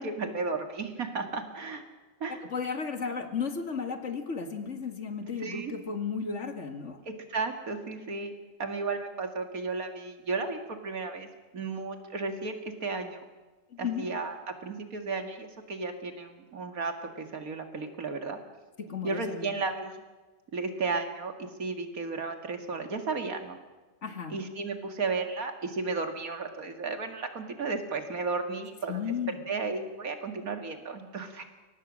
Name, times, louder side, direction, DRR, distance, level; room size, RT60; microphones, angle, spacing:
voice 1, 0.0-1.8 2.2-2.4 5.4-5.7 7.1-8.3 8.6-11.3 11.5-13.2 13.8-18.4 19.0-20.0 20.5-23.6 24.3-29.2 29.5-31.4, right 4 dB, 85° right, 6 dB, 2.5 m, -34 dB
voice 2, 2.3-7.0 13.7-14.1 18.8-19.5 24.0-24.4 28.9-29.4, left 6 dB, 55° left, 7 dB, 2.1 m, -34 dB
23.0 x 18.5 x 6.4 m, 1.2 s
omnidirectional pair, 1.5 m